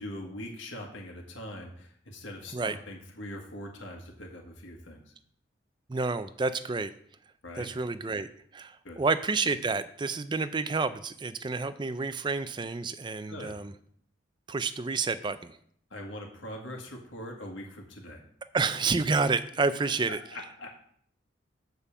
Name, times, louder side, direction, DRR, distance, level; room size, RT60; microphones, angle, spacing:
voice 1, 0.0-5.1 7.4-7.7 8.8-9.0 13.3-13.5 15.9-18.2 20.3-20.7, left 1 dB, 80° left, 0 dB, 1.7 m, -42 dB
voice 2, 5.9-6.9 7.6-13.7 14.5-15.6 18.5-20.2, right 4 dB, 25° right, 13 dB, 0.4 m, -29 dB
6.7 x 5.2 x 7.1 m, 0.63 s
head